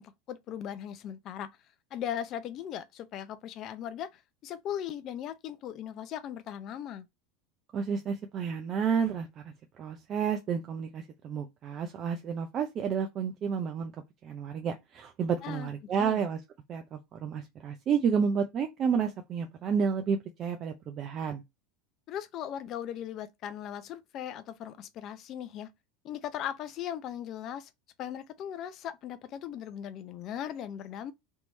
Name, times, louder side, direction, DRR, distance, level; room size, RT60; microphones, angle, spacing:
voice 1, 0.0-1.5 1.9-7.1 15.4-15.7 16.0-16.2 22.1-25.7 26.0-27.7 28.0-31.1, left 10 dB, 50° left, 0.6 m, -38 dB
voice 2, 7.7-9.5 9.8-13.9 14.2-16.4 16.7-21.4, right 6 dB, 40° right, 0.6 m, -31 dB
3.5 x 3.0 x 4.1 m
hypercardioid pair, 90°, 0 cm